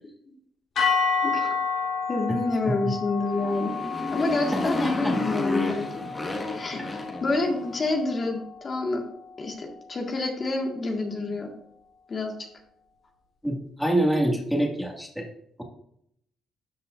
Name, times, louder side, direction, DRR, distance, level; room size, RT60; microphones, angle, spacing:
sound 1, 0.8-9.0, left 5 dB, 60° left, 3.3 m, -31 dB
voice 1, 1.2-1.5 2.1-3.7 4.1-6.1 6.5-9.0 9.4-11.5 12.1-12.3, left 2 dB, 40° left, 1 dB, 1.7 m, -28 dB
Motorcycle, 3.2-7.9, left 2 dB, 20° left, 1.6 m, -31 dB
voice 2, 4.5-5.2 6.8-6.9 13.4-15.3, right 1 dB, ahead, 1 dB, 2.0 m, -26 dB
12.5 x 5.9 x 2.6 m, 0.71 s
cardioid pair, 90°, 0 cm